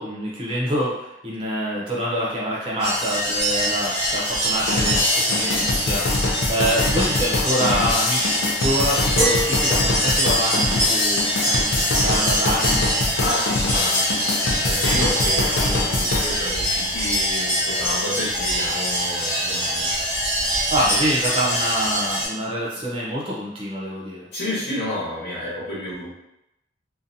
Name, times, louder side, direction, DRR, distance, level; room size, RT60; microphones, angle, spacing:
voice 1, 0.0-12.8 20.7-24.3, equal, 30° right, -5 dB, 0.5 m, -26 dB
sound 1, 2.8-22.3, equal, 15° left, 1.2 m, -24 dB
sound 2, 4.6-16.3, left 2 dB, 75° left, 0.4 m, -24 dB
voice 2, 13.1-20.0 24.3-26.1, left 1 dB, 55° left, -7 dB, 1.0 m, -30 dB
2.5 x 2.2 x 2.6 m, 0.85 s
head